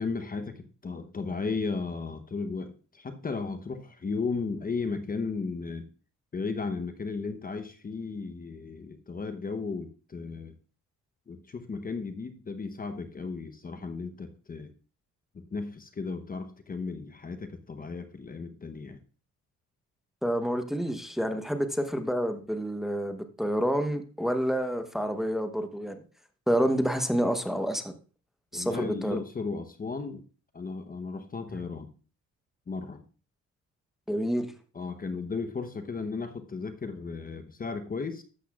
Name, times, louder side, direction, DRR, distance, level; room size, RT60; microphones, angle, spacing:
voice 1, 0.0-5.9 6.3-10.5 11.3-14.7 15.3-19.0 28.5-30.2 30.5-31.9 32.7-33.0 34.7-38.2, left 4 dB, 30° left, 8 dB, 0.9 m, -35 dB
voice 2, 20.2-26.0 26.5-27.9 28.5-29.2 31.5-31.6 34.1-34.5, equal, ahead, 7 dB, 1.0 m, -28 dB
12.5 x 7.9 x 2.4 m, 0.37 s
cardioid pair, 90°, 30 cm